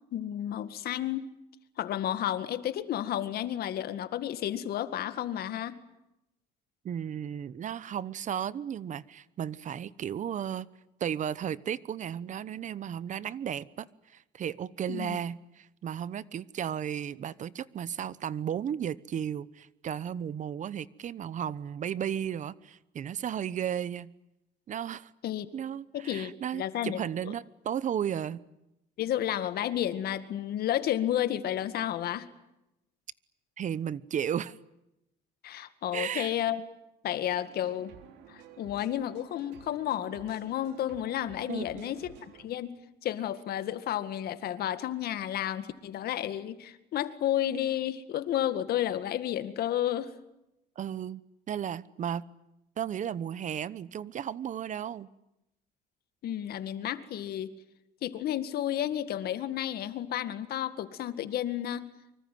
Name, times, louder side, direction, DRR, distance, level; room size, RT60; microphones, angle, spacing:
voice 1, 0.1-1.3 1.8-5.8 14.9-15.2 25.2-25.5 25.9-27.3 29.0-32.3 35.4-36.6 37.0-37.9 38.3-50.1 56.2-57.5 58.0-61.9, left 11 dB, 65° left, 12 dB, 2.1 m, -32 dB
voice 2, 6.8-10.7 11.0-24.1 24.7-25.1 25.5-28.4 33.6-34.6 35.9-36.3 41.5-42.0 50.8-51.2 51.5-52.2 52.8-55.1, right 9 dB, 45° right, 19 dB, 1.0 m, -34 dB
sound 1, 37.4-42.5, right 9 dB, 90° right, 3.6 m, -52 dB
25.0 x 24.5 x 9.4 m, 0.89 s
cardioid pair, 110°, 17 cm